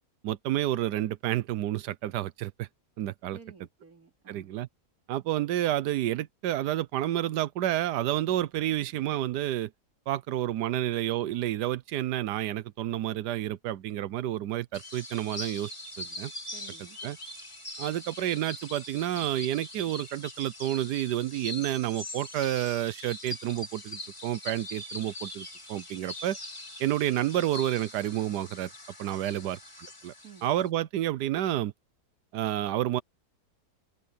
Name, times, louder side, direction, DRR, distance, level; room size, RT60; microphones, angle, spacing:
voice 1, 0.2-2.7 3.0-3.4 4.3-4.7 5.1-9.7 10.1-15.7 16.0-16.3 17.0-17.2 17.8-26.4 26.8-28.7 29.0-29.6 30.0-30.1 30.4-31.7 32.3-33.0, right 13 dB, 90° right, 1.3 m, -30 dB
voice 2, 3.3-4.6 16.5-17.0 29.3-29.6 30.2-30.5, right 5 dB, 60° right, 3.0 m, -52 dB
sound 1, 14.7-30.7, left 1 dB, 15° left, 2.9 m, -42 dB
open air
omnidirectional pair, 1.7 m